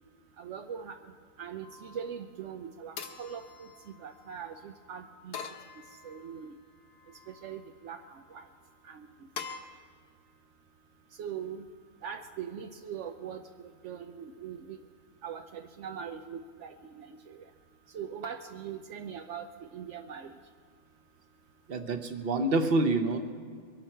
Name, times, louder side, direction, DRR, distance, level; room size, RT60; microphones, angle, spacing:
voice 1, 0.4-1.0 1.4-3.7 4.0-5.4 6.0-6.5 7.3-8.5 8.8-9.1 11.2-11.7 12.0-14.8 15.2-17.5 17.9-20.4, right 7 dB, 70° right, 6 dB, 0.6 m, -41 dB
sound 1, 1.6-2.1 3.0-4.3 5.3-6.4 7.0-7.6 9.4-9.6, left 6 dB, 65° left, 1.4 m, -44 dB
voice 2, 21.7-23.2, right 2 dB, 40° right, 7 dB, 0.9 m, -27 dB
23.0 x 12.0 x 4.5 m, 2.1 s
omnidirectional pair, 1.9 m